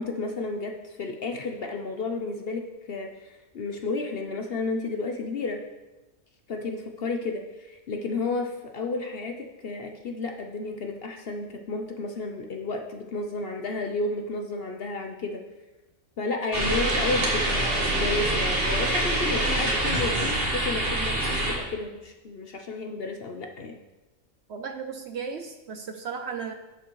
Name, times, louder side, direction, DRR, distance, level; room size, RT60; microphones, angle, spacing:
voice 1, 0.0-5.6 6.5-15.4 16.2-23.8, left 3 dB, 55° left, 4 dB, 0.8 m, -32 dB
sound 1, 16.5-21.5, right 1 dB, 45° right, 1.8 m, -25 dB
voice 2, 24.5-26.5, right 6 dB, 60° right, 7 dB, 0.7 m, -35 dB
11.0 x 7.1 x 3.1 m, 1.1 s
omnidirectional pair, 1.5 m